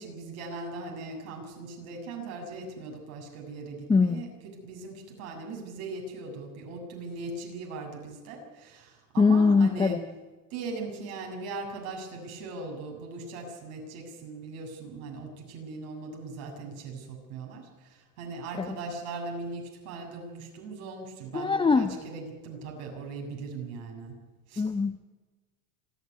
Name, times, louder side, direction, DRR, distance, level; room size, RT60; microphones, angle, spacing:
voice 1, 0.0-10.0 10.5-24.2 24.5-24.6, right 3 dB, 70° right, 1 dB, 7.1 m, -39 dB
voice 2, 3.9-4.2 9.2-10.0 18.6-18.7 21.3-21.9 24.6-25.0, left 4 dB, 10° left, 7 dB, 0.8 m, -22 dB
26.5 x 10.5 x 9.6 m, 1.3 s
supercardioid pair, 105°, 44 cm